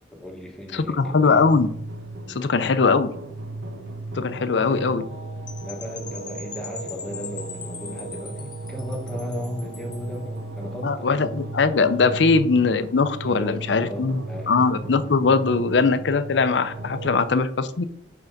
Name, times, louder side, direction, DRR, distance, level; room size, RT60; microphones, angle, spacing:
voice 1, 0.1-1.4 2.3-2.4 5.6-11.3 13.3-14.5, left 1 dB, 5° left, 0 dB, 1.2 m, -36 dB
voice 2, 0.7-1.7 2.3-3.1 4.1-5.0 10.8-17.9, left 4 dB, 75° left, 12 dB, 0.5 m, -21 dB
sound 1, 1.0-17.3, right 2 dB, 80° right, 1.1 m, -36 dB
Percussion / Wind chime, 5.5-10.2, left 6 dB, 25° left, 0.6 m, -41 dB
5.7 x 4.6 x 5.3 m, 0.68 s
head